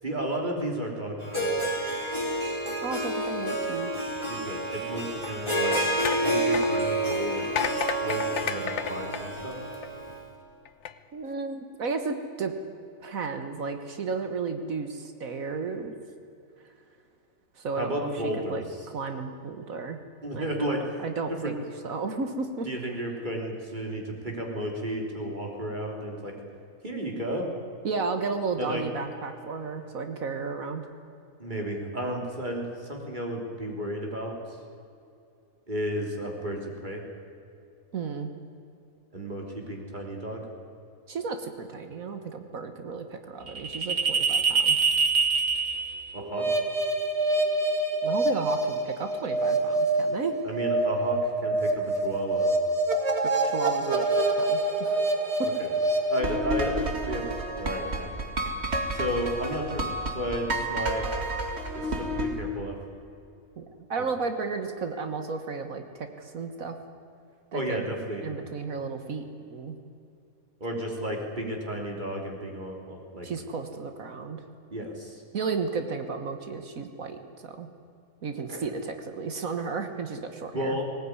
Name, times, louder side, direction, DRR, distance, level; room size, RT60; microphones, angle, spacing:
voice 1, 0.0-1.7 4.3-5.7 6.2-7.5 8.0-9.6 17.8-18.9 20.2-20.8 21.4-21.5 22.6-26.3 26.8-27.5 28.6-28.8 31.4-34.6 35.7-37.0 39.1-40.4 46.1-46.5 50.4-52.5 55.4-55.7 56.1-58.2 58.9-59.8 60.1-61.0 61.7-62.8 64.0-64.1 67.5-68.3 70.6-73.3 74.7-75.2 78.5-78.6 80.5-80.8, equal, 30° right, 1 dB, 3.6 m, -33 dB
Harp, 1.2-10.2, right 1 dB, 20° left, 3.5 m, -29 dB
voice 2, 2.8-3.9 11.1-12.5 13.0-15.9 17.6-18.1 18.4-18.6 18.9-20.0 20.3-20.7 21.0-21.5 21.8-22.7 27.8-30.8 37.9-38.3 41.1-44.8 48.0-50.4 53.4-55.0 63.6-66.8 67.5-67.8 68.2-69.2 69.5-69.8 73.2-74.4 75.3-77.7 78.2-80.8, right 4 dB, 70° right, 7 dB, 1.8 m, -33 dB
sound 1, 5.2-10.1 10.7-10.9, left 8 dB, 60° left, 1.0 m, -34 dB
sound 2, 43.5-62.4, right 2 dB, 50° right, 2.2 m, -27 dB
19.0 x 19.0 x 9.7 m, 2.6 s
omnidirectional pair, 1.5 m